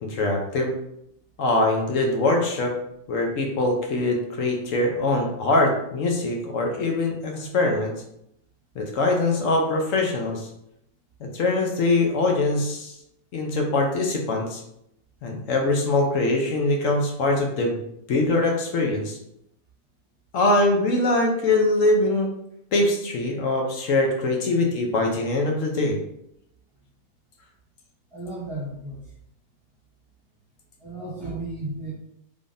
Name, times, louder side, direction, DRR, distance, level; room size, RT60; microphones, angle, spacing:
voice 1, 0.0-0.7 1.4-2.7 3.1-7.9 8.8-10.5 11.2-12.9 13.3-14.6 15.2-17.8 18.1-19.2 20.3-22.3 22.7-26.0, left 2 dB, 65° left, 1 dB, 1.0 m, -23 dB
voice 2, 28.1-29.0 30.8-31.9, right 2 dB, 20° right, -9 dB, 1.2 m, -33 dB
3.6 x 3.5 x 2.5 m, 0.79 s
omnidirectional pair, 1.6 m